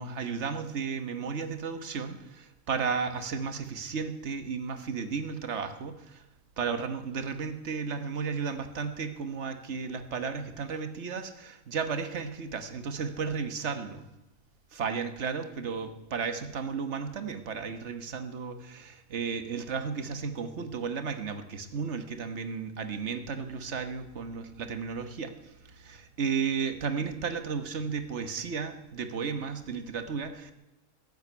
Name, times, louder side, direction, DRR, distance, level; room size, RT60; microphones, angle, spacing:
voice 1, 0.0-6.2 6.6-14.0 14.7-30.5, right 5 dB, 50° right, 9 dB, 1.5 m, -34 dB
15.0 x 8.1 x 9.4 m, 1.0 s
omnidirectional pair, 1.7 m